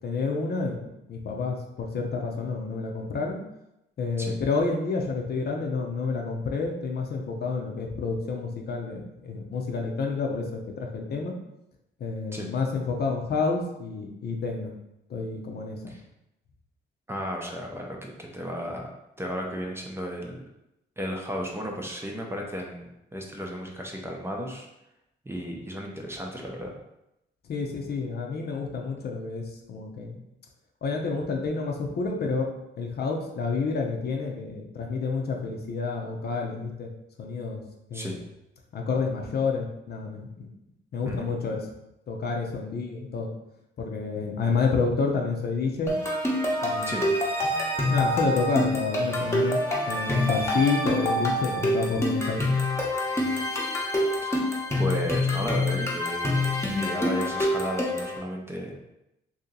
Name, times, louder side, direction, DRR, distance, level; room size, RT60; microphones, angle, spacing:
voice 1, 0.0-3.4 4.0-11.3 12.0-14.7 15.1-15.9 27.5-30.2 30.8-32.5 32.8-36.9 37.2-37.6 37.9-38.2 38.7-40.5 40.9-41.6 42.1-43.3 43.8-46.0 46.6-47.0 47.9-49.6 49.9-52.5, left 4 dB, 55° left, 1 dB, 0.7 m, -29 dB
voice 2, 17.1-18.9 19.2-20.4 21.0-24.7 25.2-26.7 37.9-38.2 41.1-41.3 46.8-47.0 54.2-54.5 54.8-58.8, equal, 10° right, 0 dB, 0.6 m, -34 dB
sound 1, 45.9-58.2, left 1 dB, 15° left, 0.9 m, -26 dB
2.8 x 2.8 x 3.8 m, 0.87 s
cardioid pair, 90°, 20 cm